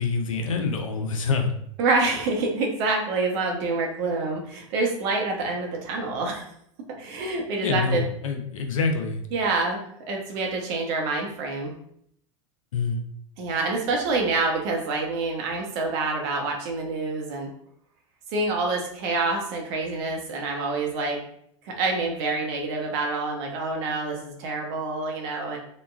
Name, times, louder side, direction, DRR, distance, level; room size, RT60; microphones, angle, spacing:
voice 1, 0.0-1.5 7.6-9.2 12.7-13.0, left 4 dB, 80° left, 5 dB, 0.5 m, -26 dB
voice 2, 1.8-6.4 7.0-8.0 9.3-11.7 13.4-17.5 18.3-21.2 21.6-25.6, right 3 dB, 55° right, 1 dB, 0.8 m, -27 dB
3.0 x 2.2 x 2.2 m, 0.69 s
hypercardioid pair, 85°, 17 cm